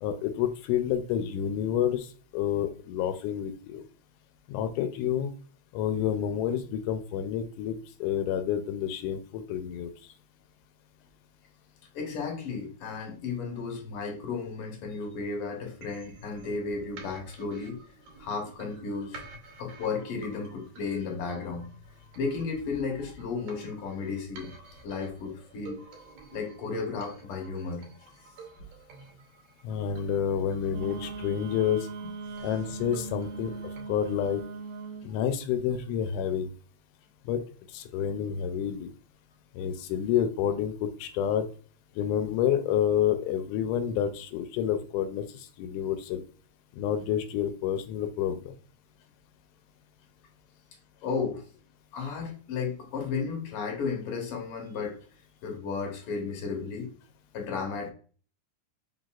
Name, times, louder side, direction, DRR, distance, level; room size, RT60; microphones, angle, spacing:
voice 1, 0.0-3.8 4.5-5.3 5.7-10.1 29.6-31.9 32.4-34.4 35.0-36.5 37.3-37.4 37.7-38.9 39.5-41.5 42.0-46.2 46.7-48.5, left 9 dB, 85° left, 8 dB, 2.1 m, -29 dB
voice 2, 11.9-17.8 18.2-19.2 19.6-21.7 22.2-24.5 24.8-25.8 26.3-27.9 33.9-34.2 51.0-51.4 51.9-55.0 55.4-56.9 57.3-57.9, left 5 dB, 55° left, 1 dB, 1.9 m, -34 dB
sound 1, 15.8-33.8, right 3 dB, 70° right, 2.0 m, -50 dB
Wind instrument woodwind instrument, 30.7-35.1, right 4 dB, 85° right, 2.1 m, -39 dB
4.8 x 4.0 x 2.4 m, 0.40 s
omnidirectional pair, 3.6 m